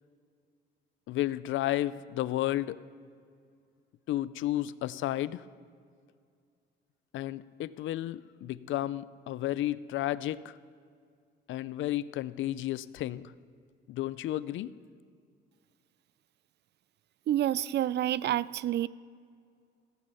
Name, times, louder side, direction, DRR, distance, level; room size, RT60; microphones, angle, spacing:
voice 1, 1.1-2.8 4.1-5.4 7.1-10.6 11.5-13.3 13.9-14.7, left 14 dB, 75° left, 18 dB, 0.5 m, -32 dB
voice 2, 17.3-18.9, right 12 dB, 60° right, 20 dB, 0.4 m, -28 dB
15.5 x 8.9 x 6.9 m, 2.2 s
cardioid pair, 90°, 20 cm